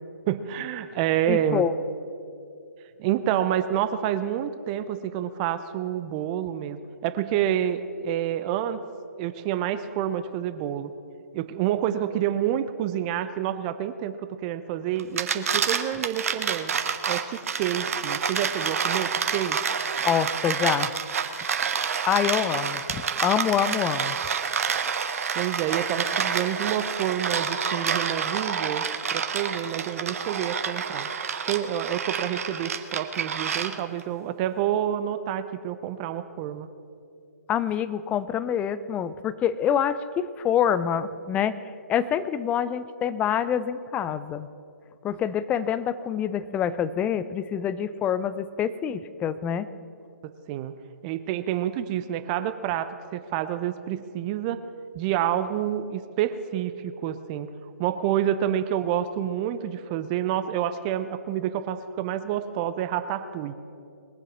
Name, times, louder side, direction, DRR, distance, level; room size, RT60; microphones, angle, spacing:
voice 1, 0.3-1.7 3.0-8.8 9.2-10.9 11.3-16.7 17.1-19.6 25.3-31.1 31.4-36.7 50.5-50.7 51.0-54.6 54.9-57.5 57.8-63.5, right 11 dB, 30° right, 11 dB, 0.6 m, -28 dB
voice 2, 1.3-1.7 20.0-20.9 22.1-24.2 37.5-41.5 41.9-44.5 45.0-49.7, left 9 dB, 15° left, 15 dB, 0.5 m, -26 dB
sound 1, 15.0-34.0, right 6 dB, 60° right, 1.1 m, -28 dB
21.5 x 7.6 x 6.0 m, 2.5 s
figure-of-eight pair, 135°, 9 cm